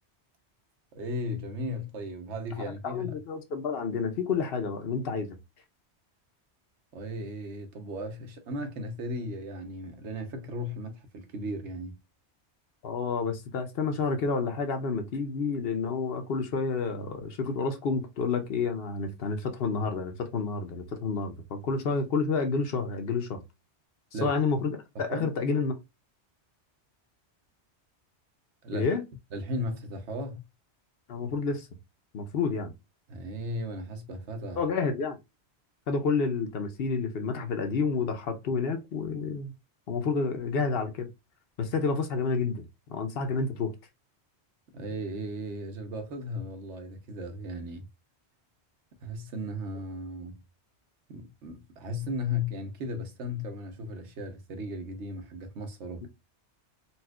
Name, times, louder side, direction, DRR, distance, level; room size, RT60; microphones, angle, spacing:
voice 1, 0.9-3.2 6.9-12.0 24.1-24.4 25.1-25.3 28.6-28.9 29.3-30.4 33.1-34.6 44.7-47.9 49.0-50.4 51.1-56.1, left 1 dB, 90° right, 1.1 m, -36 dB
voice 2, 2.8-5.4 12.8-23.4 24.2-25.7 28.7-29.0 31.1-31.7 32.1-32.7 34.6-35.2 35.9-39.5 39.9-41.1 41.6-42.6 42.9-43.7 56.0-56.1, left 4 dB, 60° left, 0.9 m, -29 dB
4.2 x 2.4 x 2.2 m
omnidirectional pair, 1.2 m